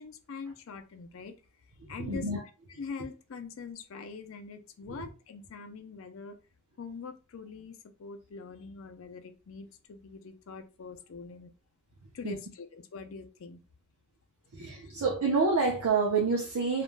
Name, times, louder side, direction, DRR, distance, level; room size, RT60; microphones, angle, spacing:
voice 1, 0.0-1.3 1.9-2.3 2.8-6.4 6.8-11.5 12.1-13.6 14.8-14.9, left 5 dB, 65° left, 0.4 m, -43 dB
voice 2, 2.0-2.4 5.0-5.1 12.0-12.4 14.5-16.8, right 4 dB, 90° right, 0.6 m, -28 dB
2.4 x 2.1 x 3.1 m
head